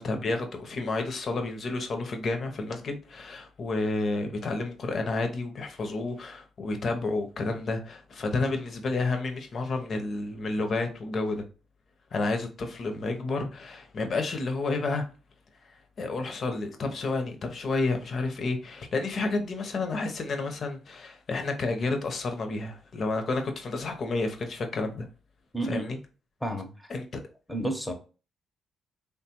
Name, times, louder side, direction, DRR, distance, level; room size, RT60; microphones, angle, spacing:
voice 1, 0.0-11.4 12.1-15.0 15.6-25.1 25.6-26.0 26.9-27.2, left 3 dB, 50° left, 0.7 m, -30 dB
voice 2, 25.5-25.9 26.4-26.9 27.5-27.9, right 1 dB, 5° left, 0.7 m, -31 dB
3.3 x 2.2 x 2.9 m
cardioid pair, 90°, 0 cm